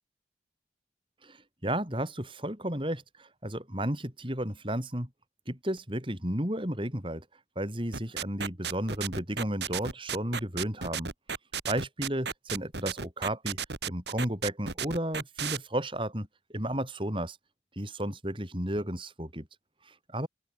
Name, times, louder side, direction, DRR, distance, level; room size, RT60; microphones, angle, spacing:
voice 1, 1.2-5.1 5.5-7.2 7.6-11.1 11.7-13.6 13.8-16.3 16.5-17.4 17.8-19.5 19.9-20.3, right 1 dB, 30° right, 5.9 m, -33 dB
sound 1, 7.9-15.6, right 6 dB, 75° right, 2.4 m, -33 dB
open air
head